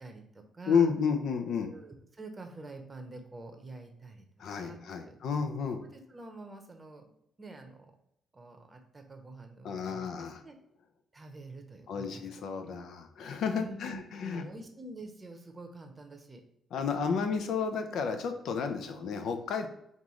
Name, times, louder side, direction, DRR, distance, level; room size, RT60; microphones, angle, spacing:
voice 1, 0.0-0.9 1.6-4.3 4.6-4.8 5.0-5.4 6.1-7.1 7.4-7.9 8.3-10.1 10.4-10.6 11.1-12.3 12.6-12.8 13.5-16.4, right 2 dB, 25° right, 5 dB, 0.8 m, -47 dB
voice 2, 0.7-1.7 4.4-5.8 9.6-10.4 11.9-14.4 16.7-19.7, left 6 dB, 70° left, 6 dB, 0.5 m, -31 dB
5.3 x 2.5 x 3.1 m, 0.77 s
cardioid pair, 90°, 0 cm